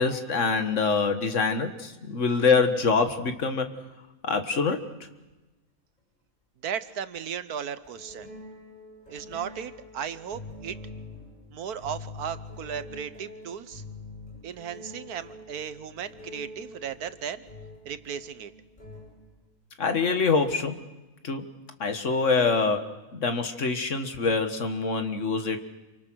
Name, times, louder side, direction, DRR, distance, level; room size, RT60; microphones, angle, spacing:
voice 1, 0.0-3.7 4.2-4.9 19.8-20.8 21.2-21.5 21.8-25.6, left 4 dB, 55° left, 7 dB, 1.9 m, -25 dB
sound 1, 3.7-3.8 5.3-5.4 7.1-7.3 7.8-19.4, left 2 dB, 30° left, 7.2 m, -45 dB
voice 2, 6.6-8.3 9.1-10.8 11.5-13.8 14.4-17.4 17.8-18.5, right 8 dB, 85° right, 13 dB, 1.5 m, -36 dB
28.0 x 24.5 x 6.3 m, 1.1 s
omnidirectional pair, 1.6 m